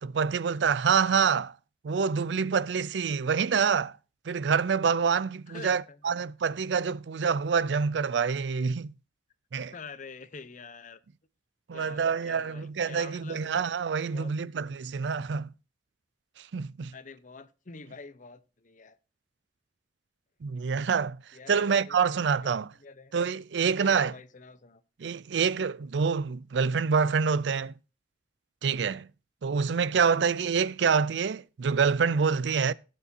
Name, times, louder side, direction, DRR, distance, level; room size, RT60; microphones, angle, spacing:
voice 1, 0.0-1.5 1.8-3.9 4.3-8.9 9.5-9.7 11.7-15.5 16.5-16.9 20.4-21.2 21.5-22.7 23.1-24.1 25.0-27.7 28.6-29.1 29.4-32.7, right 6 dB, 80° right, 0.5 m, -26 dB
voice 2, 5.5-6.0 9.7-11.0 11.7-13.7 14.1-14.3 16.9-19.0 21.3-22.2 22.8-23.1 23.8-24.8 30.1-30.2, left 4 dB, 45° left, 0.8 m, -46 dB
16.0 x 8.3 x 2.7 m
head